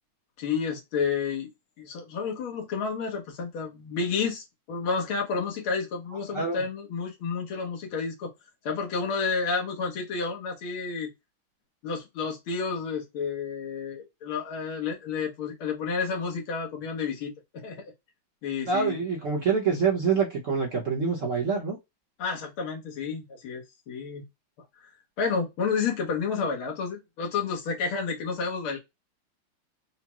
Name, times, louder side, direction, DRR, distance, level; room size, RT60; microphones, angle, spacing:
voice 1, 0.4-1.5 1.8-8.3 8.6-11.1 11.8-17.3 17.6-17.9 18.4-19.0 22.2-24.2 24.8-24.9 25.2-28.8, left 5 dB, 75° left, 1.9 m, -30 dB
voice 2, 18.7-21.8, right 5 dB, 50° right, 1.1 m, -26 dB
4.9 x 2.1 x 2.9 m
omnidirectional pair, 2.3 m